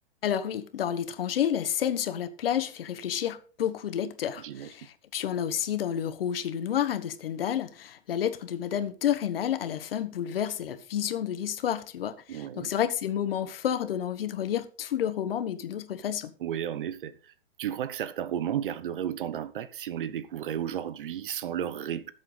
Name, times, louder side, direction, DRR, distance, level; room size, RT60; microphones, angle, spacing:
voice 1, 0.2-16.3, left 9 dB, 60° left, 1.4 m, -30 dB
voice 2, 4.4-4.7 12.3-12.7 16.4-17.3 17.6-22.1, right 10 dB, 55° right, 1.0 m, -33 dB
13.0 x 7.8 x 4.0 m
hypercardioid pair, 170°, 32 cm